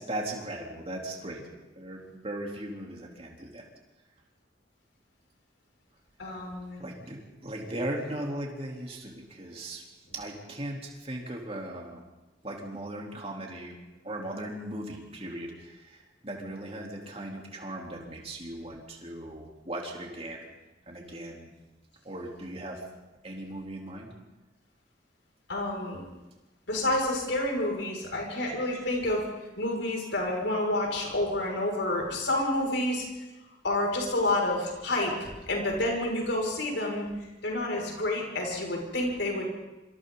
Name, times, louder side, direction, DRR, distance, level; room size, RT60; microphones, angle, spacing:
voice 1, 0.0-1.5 1.8-3.7 6.8-12.1 12.4-13.8 14.0-20.5 20.9-21.5 22.0-22.8 23.2-24.1, right 1 dB, 35° right, -1 dB, 3.6 m, -38 dB
voice 2, 6.2-6.8 25.5-26.0 26.7-29.3 29.6-33.1 33.6-37.0 37.4-39.4, left 1 dB, 80° left, -1 dB, 6.3 m, -29 dB
26.5 x 26.5 x 4.1 m, 1.1 s
head